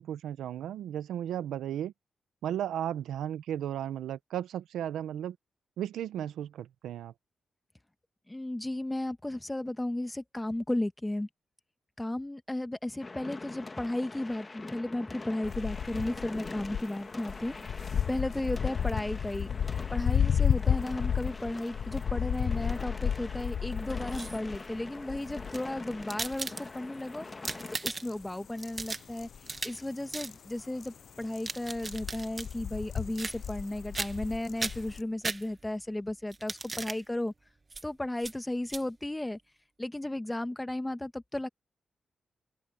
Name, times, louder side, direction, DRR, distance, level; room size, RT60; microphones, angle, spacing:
voice 1, 0.0-1.9 2.4-5.4 5.8-7.1, right 10 dB, 85° right, 0.9 m, -35 dB
voice 2, 8.3-11.3 12.0-17.5 18.1-19.5 19.9-27.3 27.8-29.3 29.6-37.3 37.8-39.4 39.8-41.5, left 1 dB, 15° left, 1.6 m, -34 dB
sound 1, 13.0-27.8, left 3 dB, 35° left, 2.1 m, -44 dB
sound 2, 15.4-16.8 17.1-26.7 27.0-27.1 27.4-27.5 28.0-28.3 28.6-30.3 30.6-30.9 31.2-35.0, left 8 dB, 70° left, 0.6 m, -32 dB
sound 3, 23.9-24.6 25.3-26.9 27.3-28.2 28.6-29.8 30.1-30.3 31.2-32.5 33.1-33.7 33.9-34.3 34.6-35.8 36.3-37.0 37.7-37.8 38.2-38.3 38.7-38.8, right 3 dB, 40° right, 2.0 m, -37 dB
open air
supercardioid pair, 45°, 0 cm